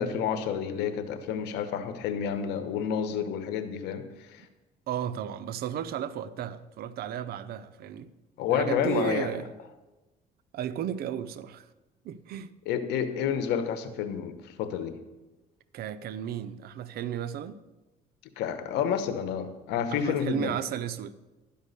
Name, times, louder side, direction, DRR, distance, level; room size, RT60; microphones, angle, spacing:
voice 1, 0.0-4.4 8.4-9.3 12.7-15.0 18.4-20.6, left 8 dB, 85° left, 1.0 m, -29 dB
voice 2, 4.9-8.1 8.5-9.5 10.5-11.7 12.0-12.5 15.7-17.6 19.9-21.1, right 10 dB, 65° right, 0.6 m, -34 dB
12.0 x 5.3 x 6.6 m
cardioid pair, 110°, 17 cm